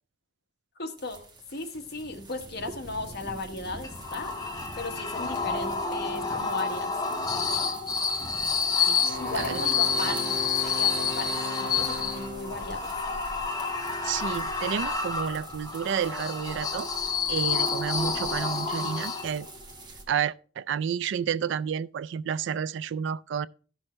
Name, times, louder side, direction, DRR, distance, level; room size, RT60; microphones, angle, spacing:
voice 1, 0.8-1.2 1.5-4.3 4.8-7.0 9.2-13.0, left 2 dB, 60° left, 1.3 m, -36 dB
sound 1, 1.0-20.0, right 1 dB, 25° right, 1.5 m, -45 dB
sound 2, 3.8-19.6, left 5 dB, 20° left, 0.8 m, -29 dB
voice 2, 8.9-9.6 14.0-16.9 17.3-19.5 20.1-23.5, right 7 dB, 65° right, 0.3 m, -30 dB
Wind instrument woodwind instrument, 9.0-12.7, left 1 dB, 45° right, 1.5 m, -38 dB
14.5 x 6.2 x 3.2 m
head